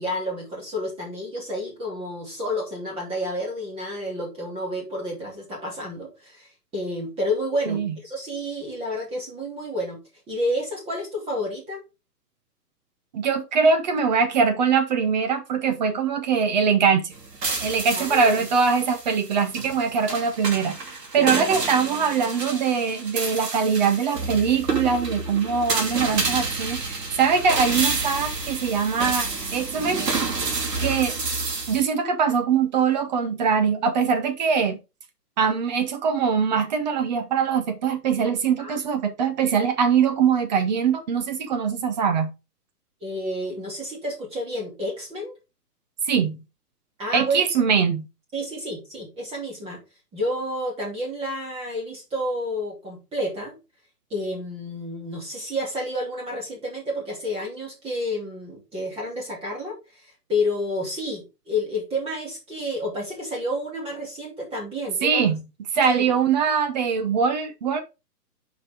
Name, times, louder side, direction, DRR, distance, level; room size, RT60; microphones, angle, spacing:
voice 1, 0.0-10.0 10.3-11.8 17.9-18.5 21.2-21.4 38.6-38.8 43.0-45.3 47.0-47.4 48.3-49.8 50.1-53.6 54.1-59.8 60.3-65.3 65.9-66.0, left 1 dB, 10° right, 2.7 m, -30 dB
voice 2, 7.7-8.0 13.1-17.0 17.6-20.8 21.1-30.0 30.8-31.2 31.7-34.8 35.4-42.3 46.1-46.4 47.1-48.1 65.0-65.4 65.7-67.8, right 6 dB, 30° right, 0.8 m, -22 dB
sound 1, 17.1-31.8, right 3 dB, 85° right, 2.8 m, -29 dB
5.8 x 5.0 x 4.9 m
hypercardioid pair, 155°, 47 cm